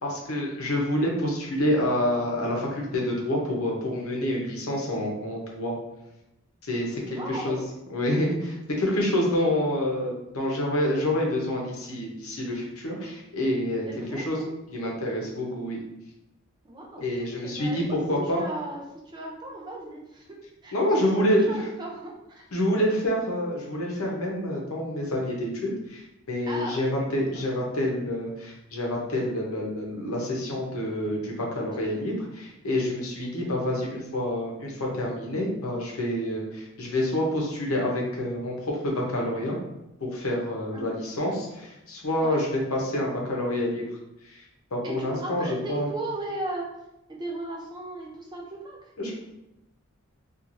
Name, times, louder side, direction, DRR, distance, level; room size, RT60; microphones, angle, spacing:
voice 1, 0.0-5.7 6.7-7.6 7.9-14.4 14.7-15.8 17.0-18.4 20.7-21.6 22.5-39.6 40.0-43.9 44.2-44.4 44.7-45.9 49.0-49.2, left 1 dB, 80° left, -1 dB, 0.8 m, -27 dB
voice 2, 7.0-7.6 13.9-14.5 15.1-15.4 16.6-17.0 17.4-17.8 18.1-20.3 20.6-20.9 21.5-22.5 26.5-27.7 40.7-40.9 42.2-42.4 44.8-46.7 47.1-48.8, right 1 dB, 20° right, -2 dB, 0.4 m, -37 dB
3.0 x 2.4 x 2.5 m, 0.89 s
head